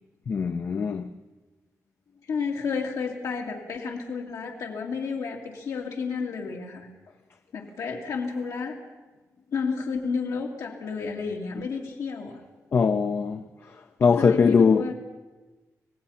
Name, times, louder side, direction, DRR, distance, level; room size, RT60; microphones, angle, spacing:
voice 1, 0.3-1.1 12.7-13.4 14.0-14.8, left 5 dB, 40° left, 0.6 m, -21 dB
voice 2, 2.3-6.9 7.5-8.7 9.5-12.3 14.2-14.9, left 5 dB, 80° left, 2.5 m, -31 dB
25.5 x 18.5 x 5.8 m
wide cardioid pair, 175°, 6 cm